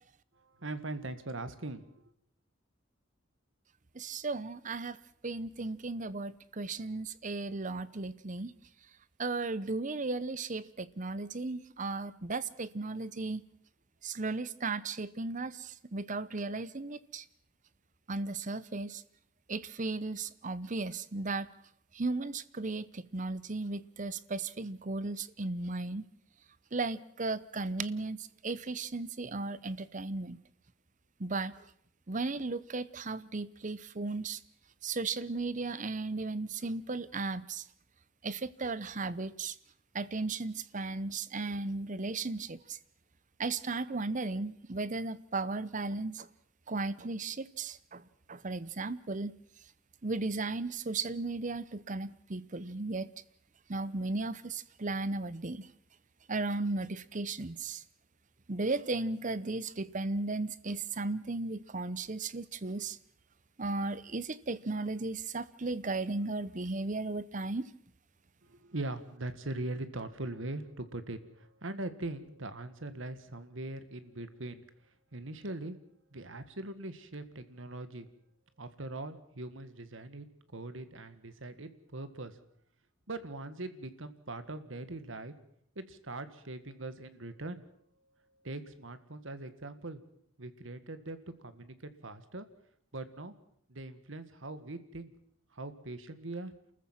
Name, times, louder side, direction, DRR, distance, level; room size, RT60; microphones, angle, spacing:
voice 1, 0.4-1.8 68.4-74.7 75.1-75.8 76.1-78.1 78.6-80.3 80.5-82.4 83.1-85.3 85.8-87.6 88.4-90.0 90.4-91.7 92.0-92.5 92.9-93.3 93.7-95.1 95.5-96.5, right 2 dB, 70° right, 1.7 m, -41 dB
voice 2, 3.9-5.0 5.2-8.5 9.2-13.4 14.0-17.2 18.1-19.0 19.5-21.5 21.9-26.1 26.7-30.4 31.2-31.6 32.1-34.4 34.8-37.6 38.2-39.5 39.9-42.8 43.4-46.3 46.7-49.3 50.0-53.1 53.7-55.7 56.3-57.8 58.5-63.0 63.6-67.7, right 3 dB, 40° right, 0.8 m, -35 dB
28.5 x 14.5 x 7.5 m
head